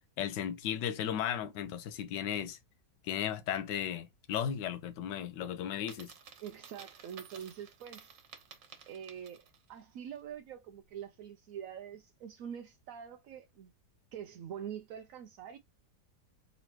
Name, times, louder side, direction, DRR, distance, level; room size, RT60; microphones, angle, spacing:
voice 1, 0.2-2.6 3.0-6.1, left 9 dB, 80° left, 1.3 m, -35 dB
Coin (dropping), 5.8-9.7, right 7 dB, 90° right, 1.7 m, -53 dB
voice 2, 6.4-8.1 8.9-9.4 9.7-13.7 14.1-15.6, right 9 dB, 70° right, 0.8 m, -45 dB
4.0 x 3.1 x 2.9 m
omnidirectional pair, 1.9 m